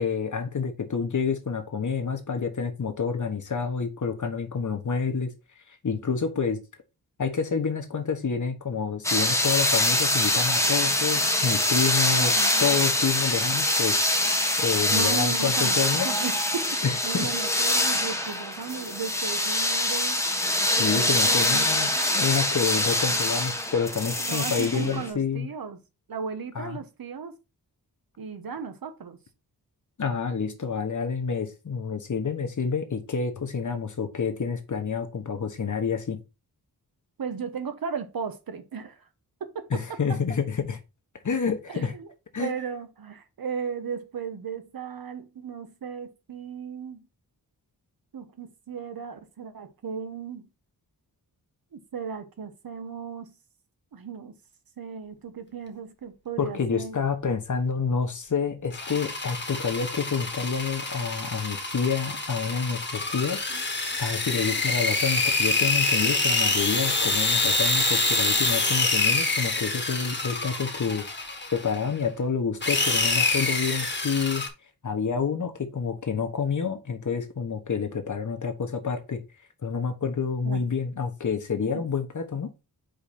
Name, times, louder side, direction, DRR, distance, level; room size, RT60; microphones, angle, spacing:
voice 1, 0.0-5.3 5.7-6.6 7.2-14.0 14.6-16.1 16.8-17.3 20.6-25.5 26.5-26.8 30.0-36.2 39.7-40.8 41.2-41.9 42.3-42.5 56.4-63.4 64.0-71.0 71.5-74.4 74.8-79.2 79.6-82.5, left 6 dB, 50° left, 1.2 m, -28 dB
sound 1, 9.0-25.1, left 1 dB, 5° left, 1.0 m, -24 dB
voice 2, 12.2-12.8 14.9-20.2 20.7-22.2 24.2-25.8 26.1-27.3 28.2-29.2 37.2-39.1 39.4-40.0 41.7-42.1 42.4-47.0 48.1-50.5 51.7-53.3 53.9-54.3 54.8-57.0 63.5-63.6 80.4-80.6 81.7-81.8, right 6 dB, 65° right, 1.1 m, -36 dB
sound 2, 58.7-71.9 72.6-74.5, left 3 dB, 30° left, 1.4 m, -26 dB
5.2 x 4.4 x 4.2 m
wide cardioid pair, 95°, 38 cm